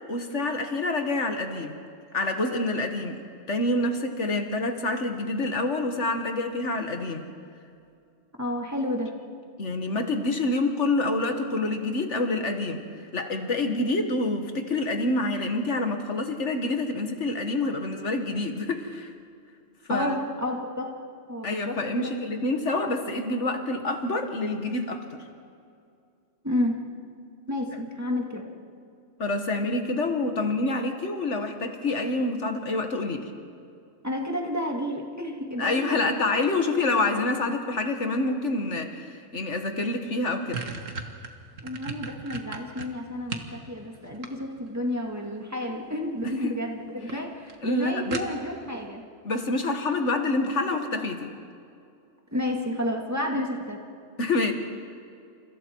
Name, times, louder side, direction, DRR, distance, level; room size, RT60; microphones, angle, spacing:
voice 1, 0.1-1.7 2.1-3.2 3.5-7.3 9.6-12.8 13.1-19.1 19.9-20.2 21.4-25.1 29.2-33.3 35.6-40.6 46.2-46.5 47.6-48.2 49.2-51.3 53.3-53.4 54.2-54.5, left 2 dB, 70° left, 5 dB, 1.9 m, -27 dB
voice 2, 8.4-9.1 19.9-20.9 21.3-22.1 26.4-26.8 27.5-28.5 34.0-36.3 41.6-49.0 52.3-53.8, left 1 dB, 15° right, 0 dB, 2.3 m, -31 dB
sound 1, 40.1-43.5 43.9-44.8 45.9-46.3 46.7-46.8 47.1-47.2 47.5-47.6 48.1-48.7, right 4 dB, 80° right, 2.0 m, -36 dB
29.5 x 28.0 x 4.7 m, 2.4 s
omnidirectional pair, 1.3 m